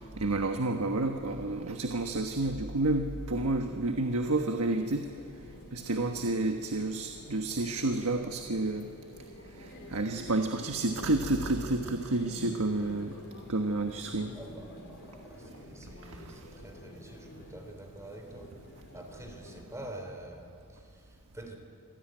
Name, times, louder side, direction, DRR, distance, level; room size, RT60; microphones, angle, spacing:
voice 1, 0.2-5.0 5.7-8.9 9.6-13.1 13.5-14.3, right 2 dB, 85° right, 5 dB, 1.3 m, -30 dB
sound 1, 4.6-19.6, left 1 dB, 55° left, 4.3 m, -50 dB
voice 2, 14.3-18.7 18.9-21.5, right 1 dB, 15° right, 3 dB, 3.4 m, -47 dB
25.5 x 17.0 x 9.0 m, 2.4 s
head